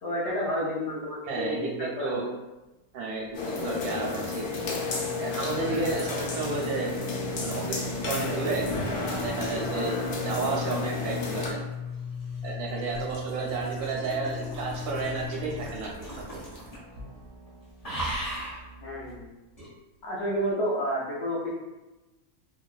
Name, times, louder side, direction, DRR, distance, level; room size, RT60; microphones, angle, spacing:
voice 1, 0.0-2.3 18.8-19.3 20.0-21.5, equal, 65° left, -5 dB, 0.7 m, -30 dB
voice 2, 1.3-2.2 2.9-4.5 5.2-6.9 7.4-8.7 9.2-10.0 10.2-11.6 12.4-16.4, right 3 dB, 90° right, -2 dB, 1.2 m, -32 dB
sound 1, 3.2-3.7 4.4-19.3, left 2 dB, 65° right, 0.8 m, -39 dB
sound 2, 3.3-11.5, left 3 dB, 80° left, 1.1 m, -32 dB
sound 3, 11.6-17.0 17.2-17.5 17.8-18.6 19.6-19.7, right 1 dB, 30° left, 0.8 m, -39 dB
3.0 x 2.2 x 2.3 m, 1.0 s
omnidirectional pair, 1.6 m